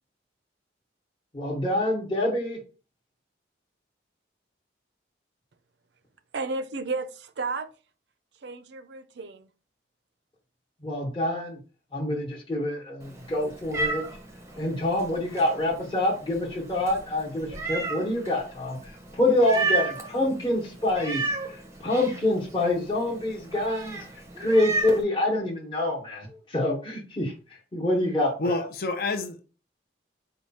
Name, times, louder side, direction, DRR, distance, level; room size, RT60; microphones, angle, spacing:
voice 1, 1.4-2.6 10.8-11.6 11.9-14.0 14.6-21.2 21.5-24.0 24.4-27.3 27.7-28.6, left 1 dB, 25° left, 1.0 m, -26 dB
voice 2, 6.3-7.7 8.4-9.5, right 3 dB, 65° right, 0.5 m, -33 dB
Meow, 13.0-25.0, right 3 dB, 15° right, 0.6 m, -34 dB
voice 3, 28.4-29.4, left 3 dB, 50° left, 0.6 m, -28 dB
4.7 x 2.3 x 4.1 m
head